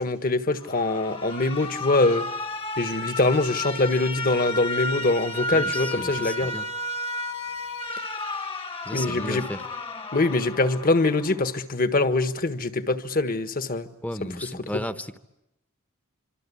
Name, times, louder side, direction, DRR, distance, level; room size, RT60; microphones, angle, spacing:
voice 1, 0.0-2.2 2.8-6.6 8.9-9.5 10.1-13.9 14.2-14.3, left 2 dB, 45° left, 11 dB, 1.5 m, -23 dB
Alarm, 0.6-11.6, left 2 dB, 25° left, 1.3 m, -33 dB
voice 2, 5.5-6.7 8.8-9.6 14.0-15.2, left 1 dB, 5° left, 12 dB, 1.0 m, -34 dB
26.0 x 25.5 x 8.6 m, 0.88 s
head